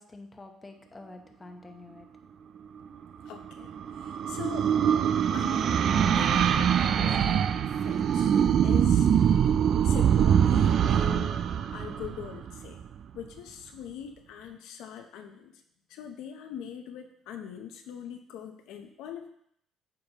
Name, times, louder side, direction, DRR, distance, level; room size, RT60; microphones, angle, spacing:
voice 1, 0.0-2.1, left 2 dB, 20° left, 4 dB, 0.9 m, -47 dB
voice 2, 3.2-4.7 5.3-7.5 7.8-8.3 8.6-9.1 9.8-11.3 11.7-12.8 13.1-15.5 15.9-19.3, left 9 dB, 85° left, 5 dB, 0.8 m, -42 dB
sound 1, 3.3-12.8, right 8 dB, 55° right, 0.4 m, -24 dB
8.3 x 5.2 x 3.0 m, 0.70 s
cardioid pair, 110°, 0 cm